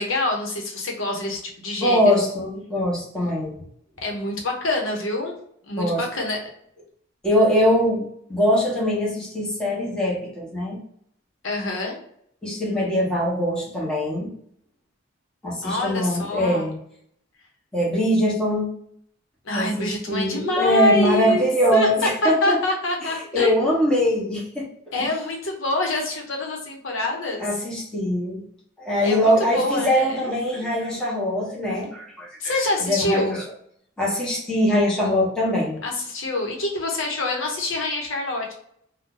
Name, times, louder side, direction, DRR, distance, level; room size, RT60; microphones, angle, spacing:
voice 1, 0.0-2.3 4.0-5.4 5.6-6.5 11.4-12.0 15.6-16.7 19.4-21.9 22.2-23.7 24.9-27.5 29.0-30.3 32.4-33.3 35.8-38.5, left 2 dB, 80° left, 0 dB, 0.9 m, -26 dB
voice 2, 1.8-3.6 5.8-6.0 7.2-8.0 8.3-10.8 12.4-14.3 15.4-16.8 17.7-18.7 19.5-22.6 23.0-24.7 27.4-28.4 28.8-32.3 32.8-33.4 34.0-35.8, equal, 5° left, -6 dB, 1.0 m, -22 dB
2.7 x 2.2 x 3.7 m, 0.68 s
head